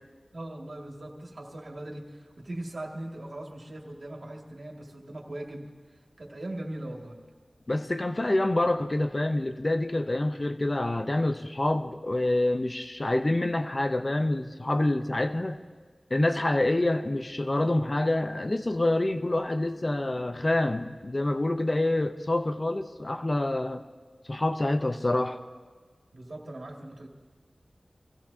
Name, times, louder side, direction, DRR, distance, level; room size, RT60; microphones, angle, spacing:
voice 1, 0.3-5.7 6.2-7.2 26.1-27.1, right 1 dB, 65° right, -1 dB, 2.2 m, -40 dB
voice 2, 7.7-15.6 16.1-23.8 24.3-25.4, left 1 dB, 35° left, 7 dB, 0.8 m, -27 dB
26.0 x 15.5 x 2.8 m, 1.4 s
wide cardioid pair, 65°, 0 cm